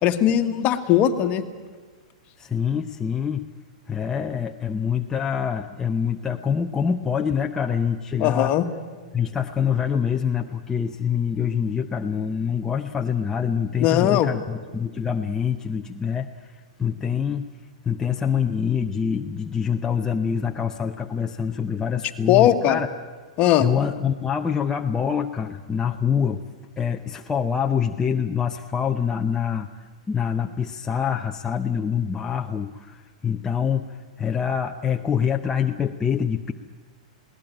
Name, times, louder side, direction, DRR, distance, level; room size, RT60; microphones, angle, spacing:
voice 1, 0.0-1.4 8.2-8.7 13.8-14.3 22.3-22.8 23.4-23.7, left 11 dB, 40° left, 8 dB, 1.6 m, -19 dB
voice 2, 2.4-3.5 3.9-8.6 9.1-17.5 17.8-22.9 23.6-26.5 26.8-36.5, left 7 dB, 15° left, 3 dB, 0.8 m, -25 dB
21.0 x 18.0 x 9.0 m, 1.4 s
hypercardioid pair, 120°, 4 cm